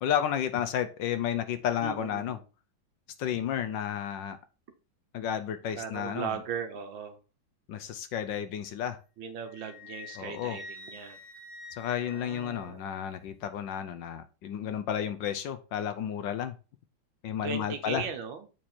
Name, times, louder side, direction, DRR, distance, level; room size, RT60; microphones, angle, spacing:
voice 1, 0.0-2.4 3.2-4.4 5.1-6.3 7.7-9.0 10.2-10.6 11.8-16.5 17.2-18.0, left 9 dB, 70° left, 10 dB, 1.3 m, -32 dB
voice 2, 1.8-2.4 5.8-7.2 9.2-11.2 12.0-12.9 17.4-18.4, right 7 dB, 70° right, 7 dB, 1.7 m, -38 dB
Wind instrument woodwind instrument, 9.5-13.0, left 3 dB, 90° left, 2.6 m, -47 dB
7.4 x 4.6 x 4.3 m, 0.33 s
omnidirectional pair, 2.2 m